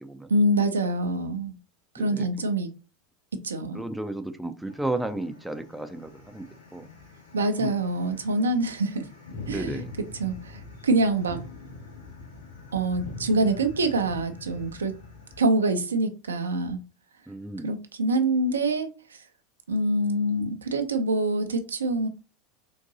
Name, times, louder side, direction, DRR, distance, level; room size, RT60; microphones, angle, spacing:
voice 1, 0.3-1.5 1.9-2.7 3.4-3.8 7.3-9.1 9.5-9.8 10.2-11.4 12.7-14.9 15.4-16.8 17.6-18.9 19.7-22.1, right 2 dB, 75° right, 7 dB, 0.4 m, -25 dB
voice 2, 2.0-2.3 3.7-6.9 7.6-7.7 9.5-9.9 17.3-17.7, right 2 dB, 5° right, 8 dB, 0.4 m, -33 dB
sound 1, 4.6-15.4, left 3 dB, 85° left, 1.4 m, -44 dB
3.8 x 2.6 x 2.7 m, 0.33 s
figure-of-eight pair, 80°, 0 cm